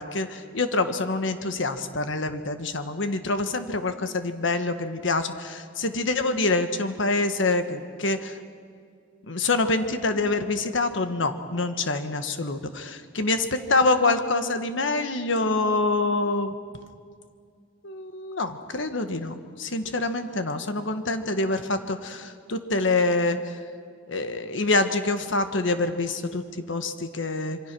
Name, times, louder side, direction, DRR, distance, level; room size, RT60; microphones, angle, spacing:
voice 1, 0.0-8.3 9.3-13.4 13.7-16.5 17.8-23.5 24.1-26.4 26.7-27.6, left 3 dB, 70° left, 8 dB, 1.4 m, -26 dB
26.5 x 23.5 x 6.2 m, 2.2 s
head